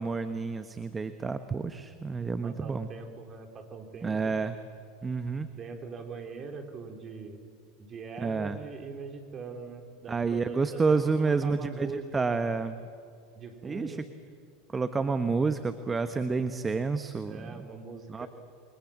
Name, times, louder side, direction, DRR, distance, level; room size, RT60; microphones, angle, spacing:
voice 1, 0.0-2.9 4.0-4.6 5.0-5.5 8.2-8.6 10.1-12.7 13.6-14.0 14.7-17.7 18.1-18.3, right 4 dB, 20° right, 10 dB, 1.3 m, -29 dB
voice 2, 2.4-4.3 5.5-7.4 7.8-12.2 13.3-14.0 17.2-18.3, right 4 dB, 35° right, 4 dB, 4.3 m, -42 dB
28.5 x 23.5 x 7.5 m, 2.3 s
hypercardioid pair, 90°, 0 cm